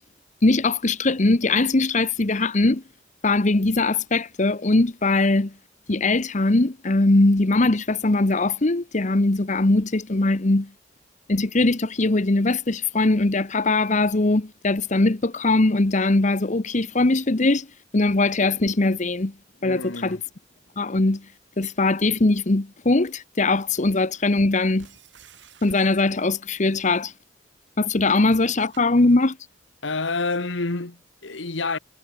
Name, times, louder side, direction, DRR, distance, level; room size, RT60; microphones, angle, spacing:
voice 1, 0.4-2.8 3.2-5.5 5.9-10.7 11.3-17.7 17.9-19.3 19.6-20.2 20.8-21.3 21.6-24.9 25.6-27.1 27.8-29.4, left 2 dB, 40° left, 1.0 m, -21 dB
voice 2, 19.6-20.2 29.8-31.8, left 3 dB, 80° left, 1.7 m, -28 dB
sound 1, 24.8-26.5 28.2-29.4, right 6 dB, 70° right, 4.0 m, -52 dB
head